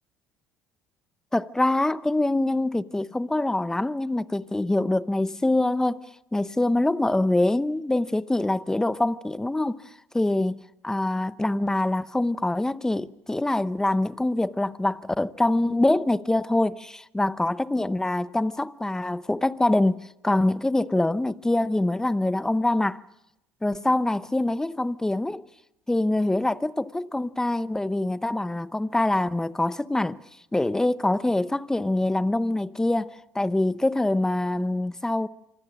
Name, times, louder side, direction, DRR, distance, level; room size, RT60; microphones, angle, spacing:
voice 1, 1.3-6.0 6.3-9.8 10.1-10.6 10.8-23.0 23.6-25.4 25.9-30.2 30.5-35.3, left 2 dB, 10° left, 0.8 m, -24 dB
26.5 x 25.5 x 6.2 m
supercardioid pair, 85°, 6 cm